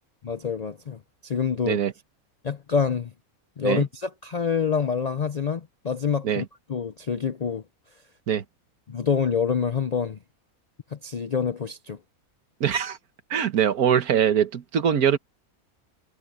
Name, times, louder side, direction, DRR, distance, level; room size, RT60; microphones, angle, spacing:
voice 1, 0.2-1.8 2.4-3.1 3.6-7.6 8.9-10.2 10.9-12.0, left 6 dB, 55° left, 0.4 m, -27 dB
voice 2, 12.6-13.0 13.3-15.2, right 8 dB, 85° right, 1.7 m, -22 dB
omnidirectional pair, 1.5 m